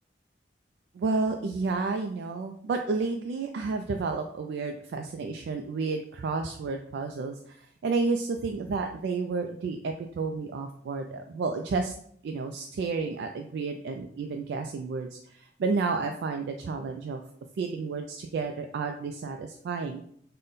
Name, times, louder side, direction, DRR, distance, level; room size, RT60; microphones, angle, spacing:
voice 1, 0.9-11.9 12.2-17.2 17.6-20.0, right 4 dB, 75° right, 4 dB, 0.3 m, -31 dB
3.6 x 2.1 x 3.9 m, 0.64 s
head